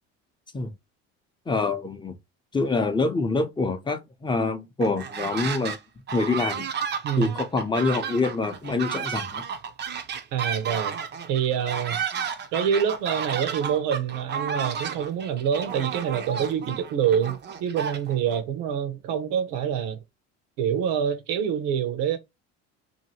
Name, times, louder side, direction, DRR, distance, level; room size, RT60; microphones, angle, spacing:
voice 1, 1.5-2.1 2.5-5.8 6.1-6.7 7.2-9.4, left 3 dB, 15° left, 0.6 m, -26 dB
sound 1, 4.8-5.8 6.1-18.4, right 7 dB, 35° right, 0.6 m, -32 dB
voice 2, 10.3-11.0 11.3-12.0 12.5-20.0 20.6-22.2, right 8 dB, 80° right, 0.9 m, -26 dB
2.8 x 2.6 x 2.8 m
supercardioid pair, 100°, 31 cm